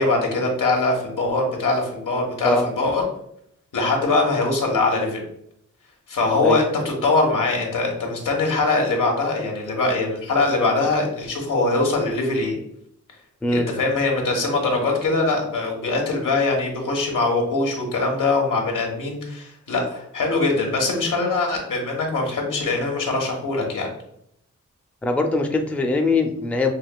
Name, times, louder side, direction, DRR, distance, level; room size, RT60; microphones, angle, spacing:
voice 1, 0.0-3.0 3.7-5.3 6.1-6.7 7.0-12.6 13.5-23.9, left 3 dB, 90° left, 0 dB, 1.2 m, -22 dB
voice 2, 25.0-26.7, left 3 dB, 5° left, 3 dB, 0.4 m, -21 dB
5.5 x 2.8 x 2.2 m, 0.74 s
wide cardioid pair, 120°, 31 cm